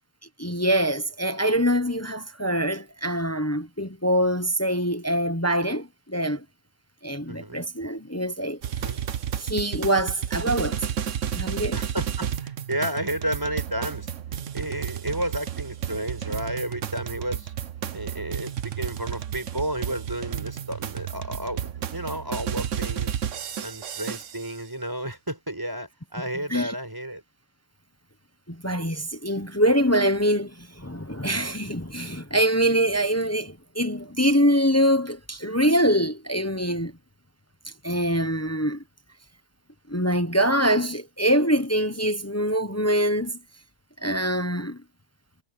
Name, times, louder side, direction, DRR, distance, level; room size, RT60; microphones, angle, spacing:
voice 1, 0.4-6.4 7.0-8.6 9.4-10.8 11.4-11.8 26.5-26.7 28.5-36.9 37.6-38.8 39.9-43.4 44.0-44.8, equal, 15° left, 0.8 m, -24 dB
voice 2, 7.3-7.7 8.8-9.0 11.7-14.1 14.5-17.5 17.9-23.3 23.6-27.2, right 1 dB, 15° right, 4.9 m, -32 dB
sound 1, 8.6-24.5, right 9 dB, 60° right, 1.2 m, -32 dB
omnidirectional pair, 1.5 m